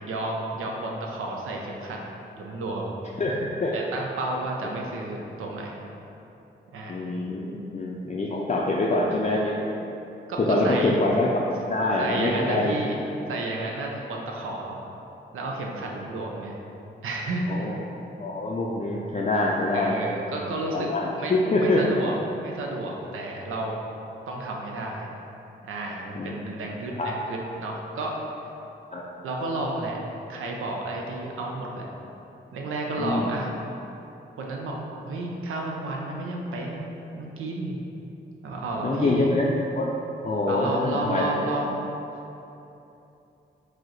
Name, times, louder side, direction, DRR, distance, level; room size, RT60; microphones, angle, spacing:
voice 1, 0.1-2.0 2.3-3.0 3.7-5.8 6.7-6.9 10.3-11.0 12.0-13.0 13.3-14.8 15.3-16.6 17.0-17.7 19.7-20.9 21.2-21.3 21.6-23.8 24.3-25.1 25.6-28.2 29.2-30.0 30.3-31.9 32.5-33.5 34.4-34.8 35.0-37.8 38.4-39.3 40.5-41.8, right 2 dB, 80° right, -1 dB, 0.6 m, -31 dB
voice 2, 3.2-3.7 6.9-9.8 10.4-12.8 17.5-17.8 18.2-19.9 20.4-21.8 26.2-26.4 27.0-27.1 28.9-29.0 33.0-33.3 38.8-39.9 40.2-41.3, left 2 dB, 35° left, -3 dB, 0.4 m, -25 dB
4.8 x 2.1 x 3.9 m, 2.9 s
supercardioid pair, 40°, 21 cm